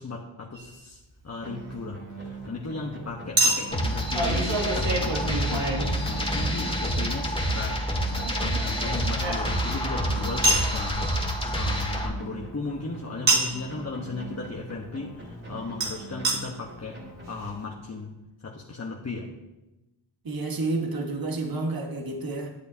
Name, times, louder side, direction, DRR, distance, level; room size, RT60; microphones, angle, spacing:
voice 1, 0.0-19.3, left 3 dB, 35° left, -1 dB, 1.1 m, -36 dB
Chink clink, 0.5-0.7 3.4-6.5 8.1-9.8 10.4-10.7 13.3-13.7 15.8-15.9 16.2-16.4 17.0-17.1 17.3-17.4, right 2 dB, 70° right, 2.1 m, -26 dB
sound 1, 1.4-17.9, right 3 dB, 30° right, 3.4 m, -42 dB
sound 2, 3.7-12.1, equal, 10° left, 2.1 m, -28 dB
voice 2, 20.2-22.5, right 2 dB, 50° right, 2 dB, 1.5 m, -30 dB
11.5 x 8.1 x 2.8 m, 1.0 s
cardioid pair, 55°, 46 cm